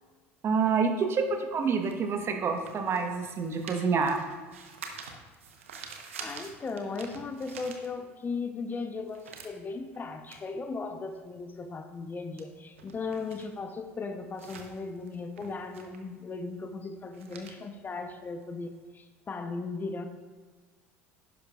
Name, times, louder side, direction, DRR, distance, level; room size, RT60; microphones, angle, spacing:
voice 1, 0.4-4.2, right 5 dB, 40° right, 5 dB, 1.2 m, -27 dB
sound 1, 0.6-8.4 8.7-18.8, right 5 dB, 80° right, 1.0 m, -48 dB
voice 2, 6.2-20.1, left 4 dB, 25° left, 8 dB, 0.8 m, -37 dB
11.5 x 10.0 x 2.4 m, 1.4 s
figure-of-eight pair, 70°, 7 cm